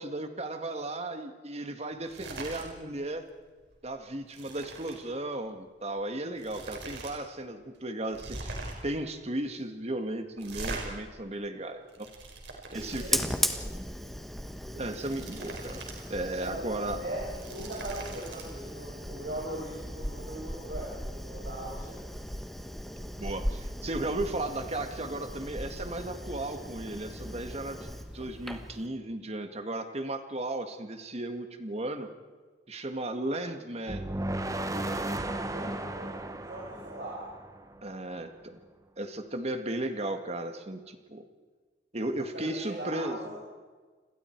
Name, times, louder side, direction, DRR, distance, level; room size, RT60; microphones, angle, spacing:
voice 1, 0.0-3.2 3.8-8.6 8.8-12.1 12.7-13.2 14.7-15.8 16.1-17.0 23.2-27.9 28.1-32.1 32.7-34.1 35.6-35.7 37.8-38.6 39.0-41.3 41.9-43.2, right 1 dB, 35° right, 7 dB, 1.9 m, -35 dB
sound 1, 2.0-2.7 3.0-3.3 3.6-5.0 5.9-6.0 6.4-7.1 7.4-7.5 8.1-8.9 10.4-10.8 11.6-13.1 14.7-16.0 16.3-16.4 17.1-18.4, right 3 dB, 80° right, 5.1 m, -41 dB
voice 2, 12.6-13.2 13.5-13.6 14.0-14.2 16.4-22.1 35.4-37.3 42.3-43.4, right 1 dB, 65° right, -5 dB, 6.1 m, -40 dB
Fire, 12.7-28.9, equal, ahead, 1.3 m, -37 dB
sound 2, 33.9-37.9, right 1 dB, 20° right, 1.1 m, -35 dB
29.5 x 21.5 x 4.7 m, 1.4 s
head